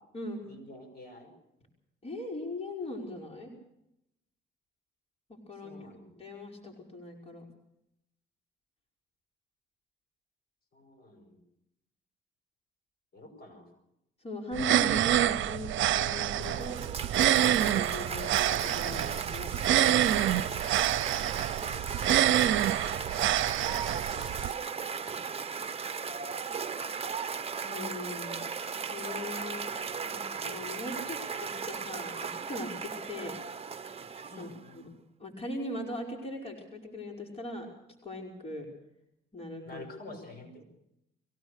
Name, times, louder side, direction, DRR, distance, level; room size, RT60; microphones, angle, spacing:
voice 1, 0.4-1.4 5.6-6.2 10.7-11.4 13.1-13.7 23.7-23.9 26.8-27.2 34.3-34.8 39.6-40.6, left 2 dB, 50° left, 6 dB, 6.0 m, -49 dB
voice 2, 2.0-3.5 5.3-5.7 6.2-7.5 14.2-16.8 17.4-20.3 27.6-29.7 30.0-33.4 34.4-34.5 34.7-34.8 35.2-37.7 38.0-38.7 39.3-39.8, left 1 dB, 30° left, 1 dB, 5.3 m, -40 dB
sound 1, 14.5-24.5, right 12 dB, 75° right, 0.8 m, -27 dB
Cheering / Applause, 16.1-34.7, right 6 dB, 30° right, 1.1 m, -37 dB
23.0 x 17.0 x 6.6 m, 0.81 s
cardioid pair, 90°, 20 cm